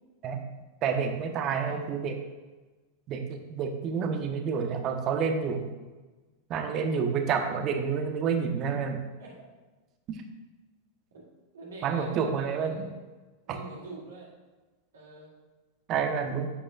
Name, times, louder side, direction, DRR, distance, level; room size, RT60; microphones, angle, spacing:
voice 1, 0.8-2.2 3.1-5.7 6.5-9.0 10.1-10.2 11.8-12.9 13.5-13.6 15.9-16.5, right 6 dB, 35° right, 6 dB, 1.1 m, -29 dB
voice 2, 1.4-1.9 9.2-9.4 11.1-11.2 11.5-12.9 13.5-14.3 14.9-15.3, right 2 dB, 65° right, -5 dB, 2.4 m, -45 dB
11.0 x 8.7 x 2.5 m, 1.2 s
figure-of-eight pair, 90°, 0 cm